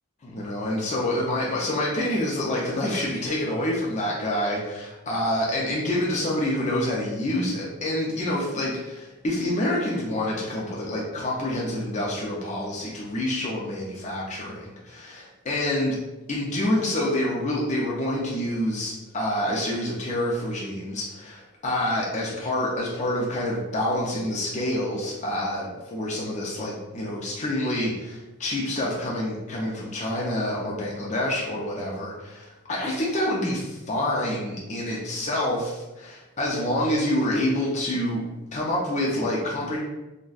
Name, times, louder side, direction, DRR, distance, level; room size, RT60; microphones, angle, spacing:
voice 1, 0.2-16.0 16.3-38.2 38.5-39.8, left 1 dB, 35° left, -4 dB, 0.5 m, -27 dB
3.8 x 2.2 x 2.4 m, 1.0 s
head